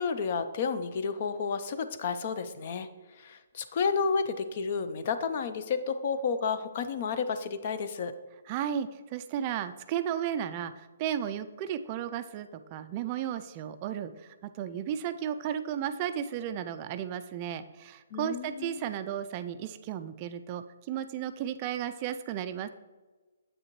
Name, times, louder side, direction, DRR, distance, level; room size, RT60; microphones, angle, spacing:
voice 1, 0.0-2.9 3.2-8.1 18.1-18.8, left 5 dB, 45° left, 11 dB, 0.5 m, -31 dB
voice 2, 8.5-22.7, right 9 dB, 30° right, 10 dB, 0.3 m, -34 dB
7.8 x 6.3 x 3.0 m, 1.2 s
hypercardioid pair, 155°, 0 cm